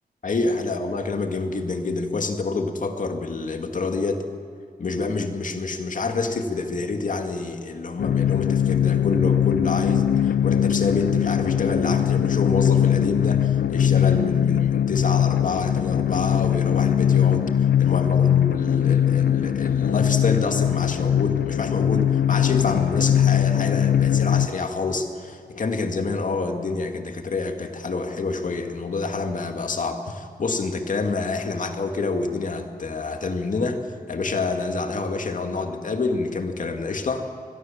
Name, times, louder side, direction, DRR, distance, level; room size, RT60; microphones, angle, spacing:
voice 1, 0.2-4.2 4.8-37.3, left 3 dB, 55° left, 5 dB, 2.2 m, -27 dB
sound 1, 8.0-24.5, left 9 dB, 85° left, 0.7 m, -21 dB
26.5 x 21.0 x 7.3 m, 2.2 s
wide cardioid pair, 105°, 16 cm